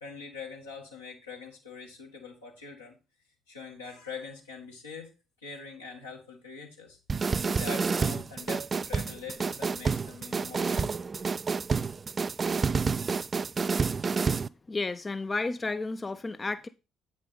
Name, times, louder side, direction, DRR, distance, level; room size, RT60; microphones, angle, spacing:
voice 1, 0.0-3.0 3.5-5.1 5.4-11.1, left 4 dB, 85° left, 1.7 m, -43 dB
sound 1, 7.1-14.5, right 5 dB, 35° right, 0.3 m, -29 dB
voice 2, 14.7-16.7, left 3 dB, 25° left, 0.5 m, -32 dB
8.1 x 5.2 x 4.0 m
figure-of-eight pair, 45°, 0 cm